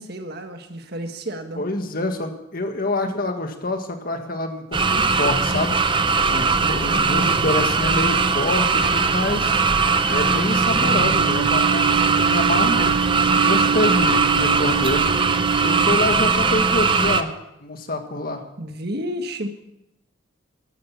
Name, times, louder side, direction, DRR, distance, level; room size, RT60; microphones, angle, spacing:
voice 1, 0.0-1.6 6.5-7.0 18.6-19.5, equal, 55° right, 6 dB, 1.7 m, -31 dB
voice 2, 1.6-5.8 6.3-9.5 10.1-15.0 15.6-17.3 17.6-18.4, left 2 dB, 45° left, 6 dB, 1.8 m, -26 dB
sound 1, 4.7-17.2, right 4 dB, 25° right, 0.7 m, -20 dB
sound 2, 5.3-16.3, right 8 dB, 80° right, 0.8 m, -29 dB
13.5 x 12.0 x 7.1 m, 0.84 s
head